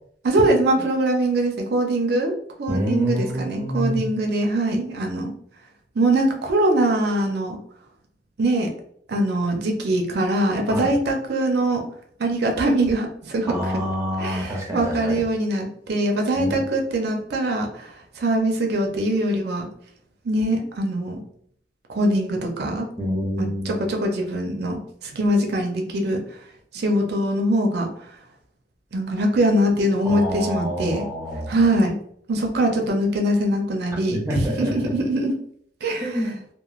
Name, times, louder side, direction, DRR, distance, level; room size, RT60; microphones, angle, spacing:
voice 1, 0.2-2.3 2.6-5.3 6.0-7.6 8.4-8.7 9.1-11.8 12.2-13.7 14.2-19.7 20.2-21.2 21.9-22.9 23.4-26.2 26.7-27.9 28.9-31.1 31.5-31.9 32.3-35.3 35.8-36.1, right 1 dB, 65° right, 2 dB, 0.5 m, -22 dB
voice 2, 2.7-4.0 10.7-11.0 13.5-15.2 16.4-16.7 23.0-23.9 30.0-31.6 34.1-35.0 36.0-36.4, equal, 15° right, -1 dB, 0.5 m, -27 dB
3.0 x 2.0 x 2.4 m, 0.64 s
head